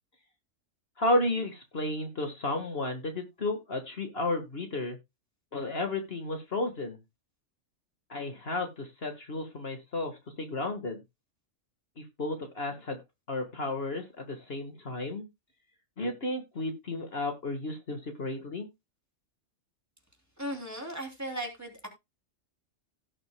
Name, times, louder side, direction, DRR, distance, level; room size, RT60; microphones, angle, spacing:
voice 1, 1.0-5.0 5.5-7.0 8.1-11.0 12.0-13.0 13.3-15.3 16.0-18.7, left 2 dB, 50° left, 5 dB, 1.8 m, -33 dB
voice 2, 20.4-21.9, right 1 dB, 10° right, 1 dB, 3.0 m, -37 dB
17.0 x 6.6 x 2.2 m, 0.22 s
omnidirectional pair, 1.3 m